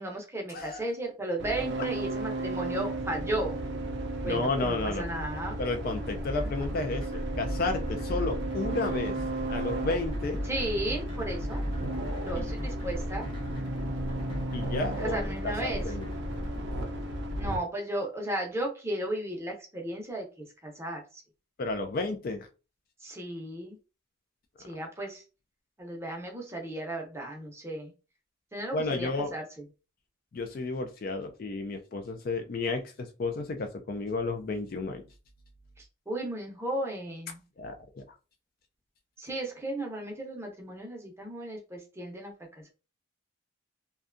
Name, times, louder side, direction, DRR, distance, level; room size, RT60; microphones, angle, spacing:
voice 1, 0.0-3.5 4.2-5.6 10.4-11.6 12.2-13.3 15.0-15.8 17.4-21.2 23.0-23.8 24.6-25.2 25.8-27.9 28.5-29.4 35.8-37.4 39.2-42.7, right 1 dB, 10° right, 0.6 m, -35 dB
sound 1, 1.4-17.6, right 1 dB, 55° right, 0.4 m, -34 dB
voice 2, 4.2-5.1 5.6-9.1 9.5-10.4 12.3-12.6 14.5-16.1 21.6-22.5 28.7-29.3 30.3-35.0 37.6-38.0, left 3 dB, 45° left, 0.3 m, -32 dB
sound 2, 6.1-16.6, equal, 25° left, 0.7 m, -37 dB
2.6 x 2.2 x 2.5 m
head